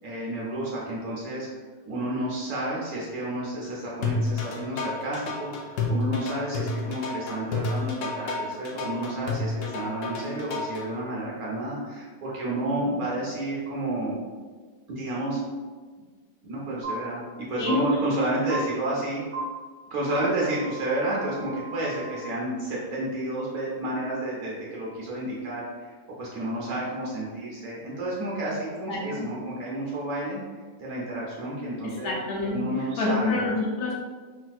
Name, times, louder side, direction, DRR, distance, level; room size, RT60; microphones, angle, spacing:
voice 1, 0.0-1.5 1.9-14.2 15.0-15.4 16.4-17.2 17.5-19.2 19.9-25.9 26.2-30.4 30.8-32.1 32.5-33.4, right 1 dB, 65° right, -5 dB, 1.0 m, -30 dB
sound 1, 4.0-10.8, left 3 dB, 90° left, 0.6 m, -29 dB
sound 2, 16.8-16.9 17.7-17.8 18.5-18.6 19.3-19.4 20.1-22.2, right 6 dB, 30° right, 0.8 m, -37 dB
voice 2, 28.9-29.2 31.8-33.9, left 2 dB, 70° left, -2 dB, 1.1 m, -28 dB
3.3 x 2.7 x 2.3 m, 1.4 s
omnidirectional pair, 1.9 m